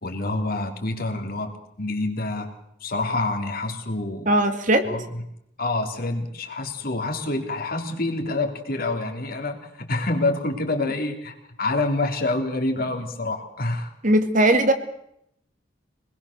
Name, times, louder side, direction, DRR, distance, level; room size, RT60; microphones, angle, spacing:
voice 1, 0.0-2.5 2.8-4.3 4.9-5.0 5.6-13.9, left 2 dB, 55° left, 4 dB, 3.3 m, -27 dB
voice 2, 4.3-4.9 10.8-10.9 14.0-14.7, right 1 dB, 45° right, 7 dB, 2.1 m, -19 dB
25.0 x 20.5 x 6.8 m, 0.76 s
head